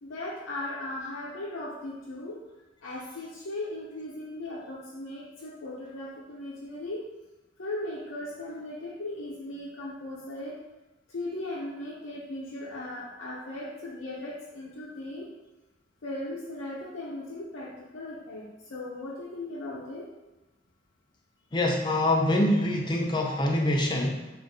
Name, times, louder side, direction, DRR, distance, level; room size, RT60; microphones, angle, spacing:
voice 1, 0.0-2.4 2.8-7.0 7.6-10.6 11.1-15.3 16.0-18.4 18.7-20.1, left 1 dB, 80° left, -5 dB, 0.6 m, -37 dB
voice 2, 21.5-24.3, left 1 dB, 25° left, 0 dB, 0.4 m, -25 dB
3.9 x 2.5 x 3.5 m, 1.0 s
head